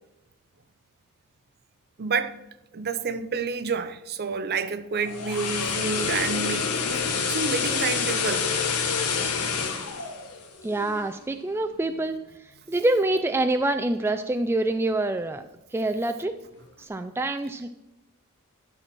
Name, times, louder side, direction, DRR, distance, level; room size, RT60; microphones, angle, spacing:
voice 1, 2.0-2.4 2.7-8.5, right 5 dB, 45° right, 0.6 m, -29 dB
sound 1, 4.9-11.1 11.5-11.7, left 5 dB, 90° left, 1.2 m, -27 dB
voice 2, 10.6-12.2 12.7-16.4 16.8-17.7, right 2 dB, 10° right, 0.3 m, -26 dB
12.5 x 6.1 x 4.3 m
head